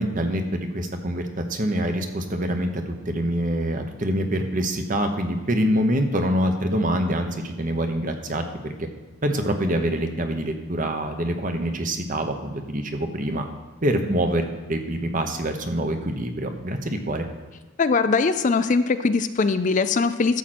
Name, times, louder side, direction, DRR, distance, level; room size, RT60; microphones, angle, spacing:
voice 1, 0.0-8.9 9.2-13.4 13.8-14.4 14.7-17.3, right 1 dB, 40° right, 6 dB, 1.0 m, -25 dB
voice 2, 17.8-20.4, left 4 dB, 40° left, 11 dB, 0.4 m, -21 dB
12.0 x 7.7 x 4.3 m, 1.3 s
head